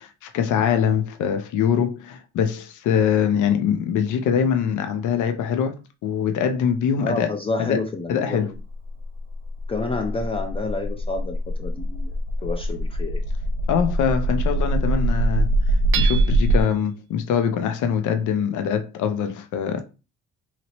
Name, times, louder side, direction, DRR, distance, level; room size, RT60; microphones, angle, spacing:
voice 1, 0.0-5.8 6.0-7.3 7.6-7.8 8.1-8.5 13.7-15.5 15.9-19.8, left 7 dB, 80° left, 0.6 m, -23 dB
voice 2, 7.0-8.6 9.7-12.1 12.4-13.2, left 3 dB, 20° left, 0.5 m, -29 dB
sound 1, 8.6-16.6, right 1 dB, 90° right, 0.7 m, -23 dB
Hammer / Chink clink, 15.9-16.7, right 10 dB, 45° right, 0.4 m, -29 dB
2.9 x 2.9 x 2.9 m
cardioid pair, 90°, 30 cm